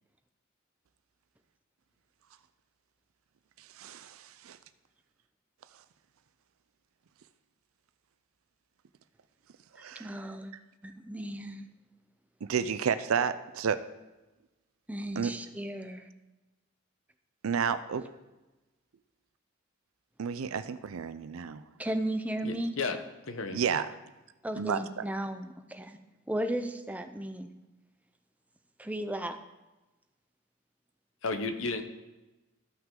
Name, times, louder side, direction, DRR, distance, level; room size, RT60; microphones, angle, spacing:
voice 1, 3.7-4.6 9.8-10.1 12.4-13.8 15.2-15.3 17.4-18.1 20.2-21.6 23.5-23.9 24.6-25.0, right 6 dB, 80° right, 12 dB, 0.5 m, -31 dB
voice 2, 9.8-10.5 10.8-11.7 14.9-16.0 21.8-22.7 24.4-26.0 26.3-27.5 28.8-29.4, right 1 dB, 5° right, 7 dB, 0.5 m, -35 dB
voice 3, 22.4-23.0 23.3-23.6 31.2-31.8, left 4 dB, 65° left, 8 dB, 0.9 m, -33 dB
14.0 x 5.9 x 3.8 m, 1.1 s
head